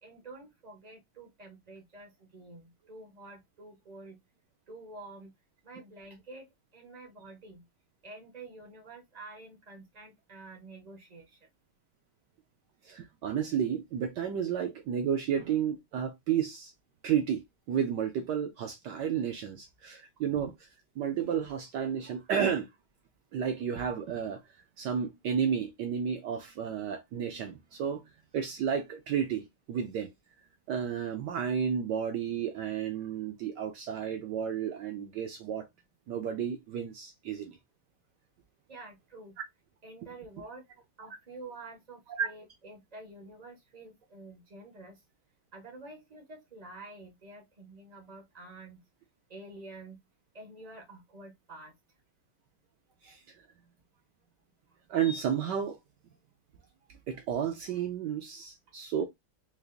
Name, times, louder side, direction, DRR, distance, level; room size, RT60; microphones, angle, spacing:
voice 1, 0.0-4.2 4.7-5.3 5.6-6.5 6.7-7.6 8.0-11.4 38.7-39.3 39.8-40.6 41.0-45.0 45.5-48.8 49.3-50.0 50.3-51.7, right 2 dB, 60° right, 0.4 m, -48 dB
voice 2, 12.8-16.7 17.0-20.7 21.0-22.7 23.3-24.4 24.8-28.0 28.3-30.1 30.7-35.7 36.1-37.6 41.1-41.2 42.2-42.3 53.0-53.2 54.9-55.8 57.1-59.1, right 8 dB, 80° right, 1.0 m, -32 dB
4.8 x 2.4 x 2.5 m
omnidirectional pair, 2.4 m